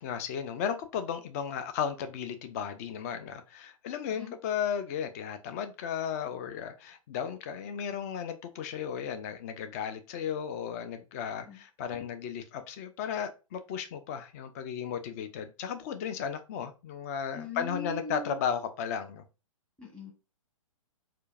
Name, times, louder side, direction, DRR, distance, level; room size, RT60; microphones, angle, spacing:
voice 1, 0.0-19.2, left 8 dB, 25° left, 0.4 m, -35 dB
voice 2, 17.3-18.4 19.8-20.1, left 2 dB, 5° left, 1.2 m, -40 dB
4.4 x 2.5 x 2.4 m
figure-of-eight pair, 115°, 18 cm